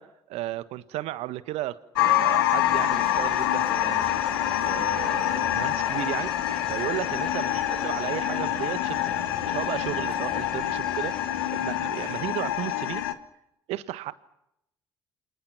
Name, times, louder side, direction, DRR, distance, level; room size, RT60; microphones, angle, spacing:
voice 1, 0.0-4.2 4.6-6.3 6.7-13.1 13.7-14.1, right 15 dB, 65° right, 1.4 m, -34 dB
sound 1, 2.0-13.1, left 13 dB, 80° left, 1.3 m, -26 dB
sound 2, 2.6-12.9, left 1 dB, 5° left, 3.1 m, -40 dB
29.5 x 27.0 x 5.9 m
hypercardioid pair, 50°, 12 cm